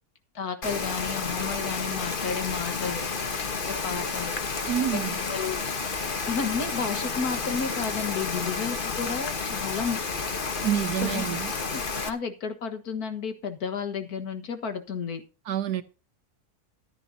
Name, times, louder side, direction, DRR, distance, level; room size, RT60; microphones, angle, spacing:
voice 1, 0.4-4.5 4.9-5.6 6.3-10.0 11.0-11.2 11.7-15.2, left 6 dB, 70° left, 2.0 m, -32 dB
Rain, 0.6-12.1, left 4 dB, 35° left, 1.2 m, -31 dB
voice 2, 4.7-5.2 10.6-11.5 15.5-15.8, right 10 dB, 80° right, 1.5 m, -27 dB
14.5 x 11.0 x 2.8 m
omnidirectional pair, 1.7 m